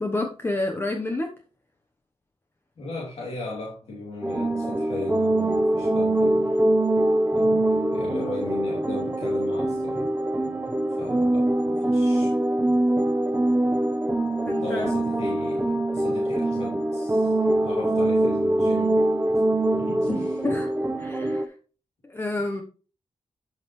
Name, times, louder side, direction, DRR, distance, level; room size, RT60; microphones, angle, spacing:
voice 1, 0.0-1.3 14.4-14.9 20.4-20.7 21.0-21.5 22.0-22.6, left 2 dB, 20° left, 1.0 m, -29 dB
voice 2, 2.8-6.5 7.3-10.2 11.0-12.4 14.6-17.4 17.6-18.9 19.7-20.5, left 2 dB, 65° left, 2.8 m, -36 dB
sound 1, 4.2-21.5, right 1 dB, 15° right, 0.8 m, -23 dB
12.0 x 5.5 x 3.2 m
wide cardioid pair, 140°, 11 cm